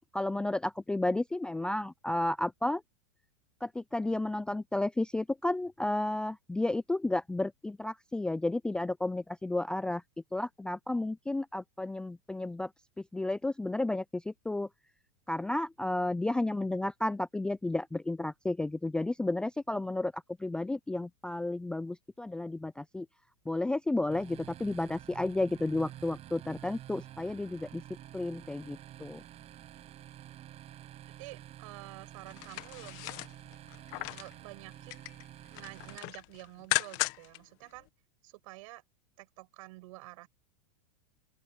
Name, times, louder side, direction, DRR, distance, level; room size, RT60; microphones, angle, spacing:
voice 1, 0.1-2.8 3.6-10.0 10.3-12.7 13.1-14.7 15.3-23.1 23.5-27.8 28.1-29.2, left 2 dB, 5° left, 0.4 m, -32 dB
sound 1, 24.1-36.0, right 12 dB, 35° right, 7.9 m, -49 dB
voice 2, 31.2-33.3 34.1-37.9 38.2-38.8 39.2-40.3, right 21 dB, 65° right, 7.5 m, -49 dB
sound 2, 32.3-34.3 34.7-35.2 35.5-37.4 37.8-37.9, left 23 dB, 50° left, 1.5 m, -36 dB
open air
supercardioid pair, 125°, 19 cm